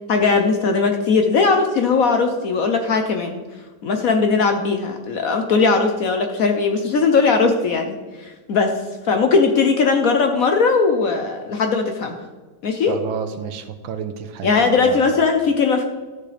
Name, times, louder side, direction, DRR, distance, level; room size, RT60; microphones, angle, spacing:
voice 1, 0.1-3.4 3.8-8.8 9.0-12.2 12.6-13.0 14.4-15.8, left 4 dB, 65° left, 5 dB, 0.9 m, -19 dB
voice 2, 12.9-15.1, right 7 dB, 80° right, 9 dB, 1.5 m, -30 dB
13.0 x 6.8 x 3.3 m, 1.3 s
omnidirectional pair, 2.2 m